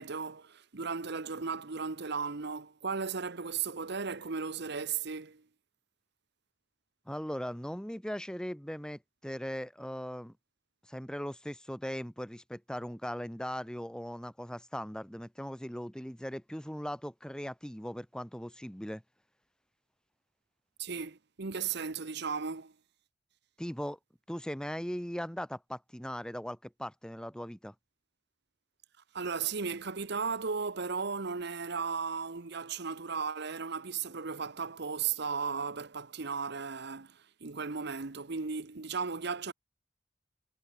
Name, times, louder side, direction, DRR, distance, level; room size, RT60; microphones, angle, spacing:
voice 1, 0.0-5.4 20.8-22.7 29.1-39.5, right 5 dB, 65° right, 1.1 m, -35 dB
voice 2, 7.1-10.3 10.9-19.0 23.6-24.0 24.3-27.7, equal, 5° left, 1.5 m, -39 dB
head